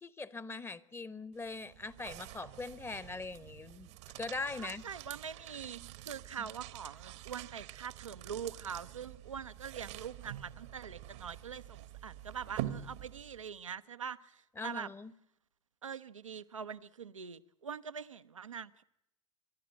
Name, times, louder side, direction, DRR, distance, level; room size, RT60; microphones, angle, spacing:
voice 1, 0.0-4.8 6.4-6.5 14.6-15.1, left 3 dB, 15° left, 17 dB, 1.0 m, -42 dB
sound 1, 1.3-13.5, right 13 dB, 60° right, 1.1 m, -47 dB
voice 2, 4.6-14.9 15.8-18.8, right 7 dB, 80° right, 12 dB, 0.7 m, -43 dB
27.0 x 11.5 x 8.7 m, 0.81 s
figure-of-eight pair, 75°, 16 cm